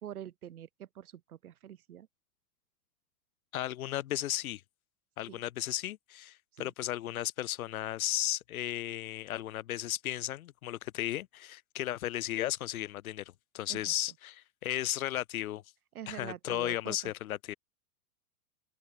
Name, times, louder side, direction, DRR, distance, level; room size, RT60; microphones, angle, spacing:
voice 1, 0.0-2.1 5.3-5.4 6.6-6.7 13.7-13.9 15.9-17.1, right 10 dB, 85° right, 3.7 m, -45 dB
voice 2, 3.5-4.6 5.2-13.2 13.5-15.6 16.1-17.5, left 13 dB, 75° left, 2.5 m, -35 dB
hypercardioid pair, 125°, 43 cm